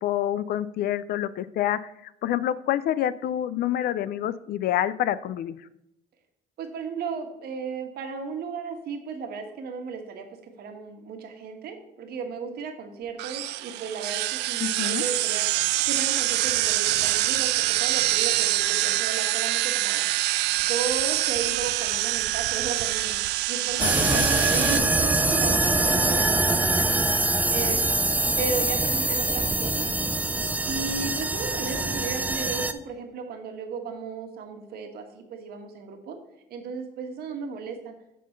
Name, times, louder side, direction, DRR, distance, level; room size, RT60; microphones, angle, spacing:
voice 1, 0.0-5.6 14.6-15.0 23.8-24.3, left 11 dB, 65° left, 17 dB, 0.4 m, -27 dB
voice 2, 6.6-15.5 15.9-20.1 20.6-23.2 23.5-27.8 28.4-29.9 30.6-36.2 36.5-37.9, right 5 dB, 70° right, 5 dB, 1.4 m, -35 dB
sound 1, 13.2-24.8, right 17 dB, 85° right, 0.4 m, -25 dB
sound 2, 23.8-32.7, right 2 dB, 10° right, 0.4 m, -24 dB
7.5 x 3.8 x 6.5 m, 0.83 s
cardioid pair, 110°, 17 cm